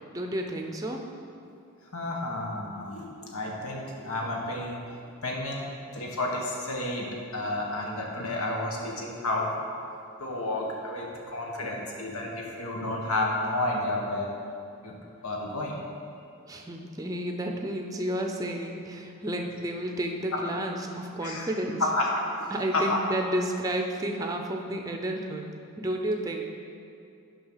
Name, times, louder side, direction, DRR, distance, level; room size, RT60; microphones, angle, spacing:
voice 1, 0.1-1.0 16.5-21.8 22.5-25.5 25.8-26.5, right 1 dB, 15° right, 2 dB, 0.5 m, -31 dB
voice 2, 1.9-4.8 5.2-5.7 5.9-9.6 10.2-14.3 14.8-14.9 15.2-15.8 20.3-20.6 21.2-21.5 21.8-23.0, left 2 dB, 90° left, -1 dB, 1.3 m, -31 dB
7.8 x 5.6 x 5.6 m, 2.5 s
head